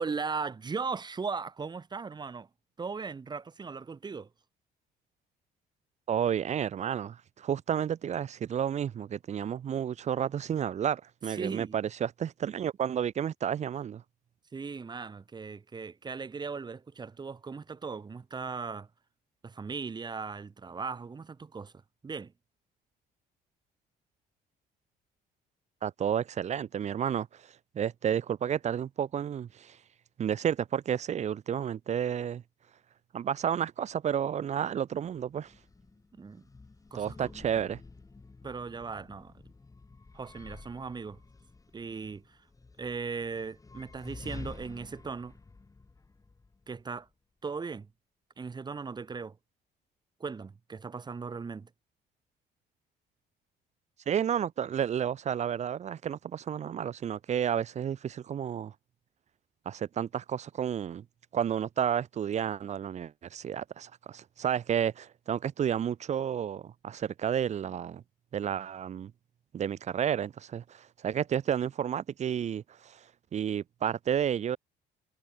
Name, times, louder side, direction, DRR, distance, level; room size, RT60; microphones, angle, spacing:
voice 1, 0.0-2.5 2.8-4.3 11.3-11.7 14.5-18.9 19.4-21.7 22.0-22.3 36.1-36.5 36.9-37.3 38.4-39.4 40.1-41.2 41.7-42.4 42.8-45.4 46.7-47.1 47.4-47.9 48.4-49.4 50.2-51.7, right 5 dB, 25° right, 2.0 m, -38 dB
voice 2, 6.1-14.0 25.8-29.8 30.2-32.4 33.1-35.5 36.9-37.8 54.1-58.7 59.6-61.0 61.3-68.0 68.3-69.1 69.5-73.1 73.3-74.6, right 9 dB, 40° right, 1.0 m, -31 dB
sound 1, 35.0-47.1, left 3 dB, 20° left, 6.5 m, -50 dB
cardioid pair, 110°, 17 cm